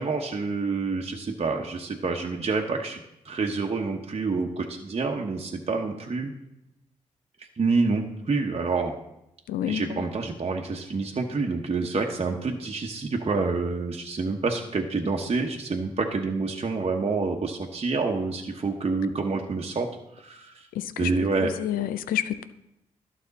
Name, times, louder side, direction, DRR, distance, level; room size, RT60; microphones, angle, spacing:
voice 1, 0.0-6.3 7.4-8.9 9.7-19.9 20.2-20.7 21.0-21.5, right 4 dB, 45° right, 1 dB, 1.0 m, -28 dB
voice 2, 9.5-10.0 20.8-21.1 21.4-22.5, left 11 dB, 90° left, 14 dB, 0.4 m, -29 dB
11.5 x 5.9 x 4.1 m, 0.86 s
supercardioid pair, 45°, 14 cm